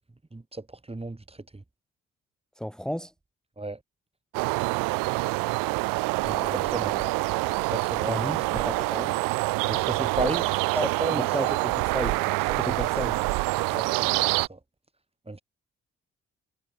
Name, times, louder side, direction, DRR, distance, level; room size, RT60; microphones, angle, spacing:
voice 1, 0.3-1.6 3.6-3.8 6.4-7.0 7.7-8.3 9.6-10.4 11.0-11.2 12.7-12.8 13.7-14.6 15.3-15.4, right 2 dB, 15° right, 3.5 m, -34 dB
voice 2, 2.6-3.1 6.2-7.1 8.1-9.2 9.7-10.4 10.7-12.2 12.6-13.2, equal, ahead, 2.6 m, -34 dB
sound 1, 4.3-14.5, right 25 dB, 75° right, 1.2 m, -26 dB
hypercardioid pair, 45°, 34 cm